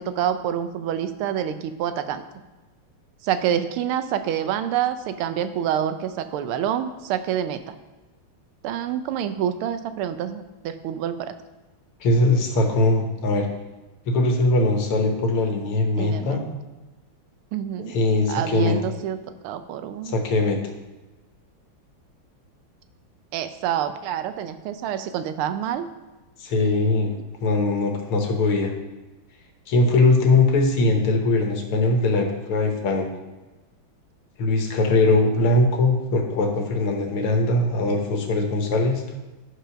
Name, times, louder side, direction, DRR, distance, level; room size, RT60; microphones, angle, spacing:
voice 1, 0.0-2.2 3.2-7.7 8.6-11.3 16.0-16.4 17.5-17.9 18.3-20.2 23.3-25.9, right 10 dB, 90° right, 11 dB, 1.5 m, -27 dB
voice 2, 12.0-13.5 14.1-16.4 17.8-18.8 20.0-20.6 26.4-27.1 27.4-28.7 29.7-33.1 34.4-39.0, left 2 dB, 90° left, 3 dB, 2.0 m, -21 dB
8.9 x 5.1 x 5.6 m, 1.2 s
omnidirectional pair, 2.3 m